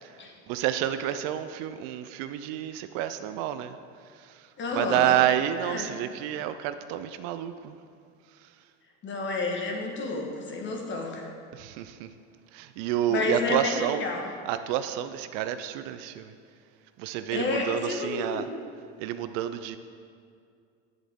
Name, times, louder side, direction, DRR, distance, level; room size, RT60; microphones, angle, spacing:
voice 1, 0.5-3.8 4.1-7.8 8.4-8.5 11.5-12.1 12.5-14.0 14.5-16.3 17.0-18.4 19.0-19.8, right 12 dB, 60° right, 11 dB, 0.5 m, -29 dB
voice 2, 4.6-5.2 5.6-5.9 9.0-11.3 12.8-14.2 17.3-18.4, left 3 dB, 35° left, 1 dB, 1.4 m, -30 dB
10.0 x 7.2 x 3.6 m, 2.3 s
supercardioid pair, 115°, 35 cm